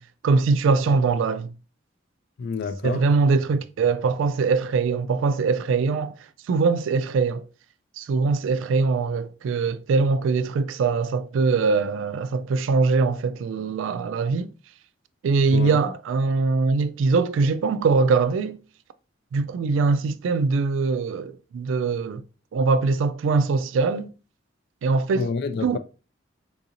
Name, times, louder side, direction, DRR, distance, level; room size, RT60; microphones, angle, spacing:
voice 1, 0.2-1.5 2.8-6.1 6.5-7.5 8.0-14.5 15.2-18.6 19.3-22.2 22.5-24.1 24.8-25.3 25.6-25.8, right 4 dB, 80° right, 0.3 m, -22 dB
voice 2, 2.4-3.0 15.5-15.8 25.1-25.8, left 5 dB, 60° left, 0.3 m, -28 dB
3.7 x 2.5 x 2.8 m
head